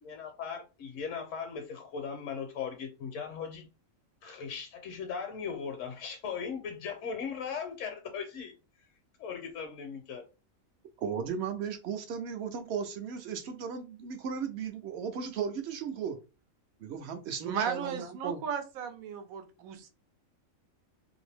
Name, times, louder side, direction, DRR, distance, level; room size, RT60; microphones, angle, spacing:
voice 1, 0.0-3.7 4.2-8.5 9.2-10.2, left 6 dB, 70° left, 4 dB, 0.9 m, -38 dB
voice 2, 11.0-16.2 16.8-18.4, right 6 dB, 65° right, 7 dB, 0.7 m, -36 dB
voice 3, 17.4-19.9, right 7 dB, 85° right, 7 dB, 1.1 m, -35 dB
2.7 x 2.5 x 3.3 m, 0.31 s
omnidirectional pair, 1.4 m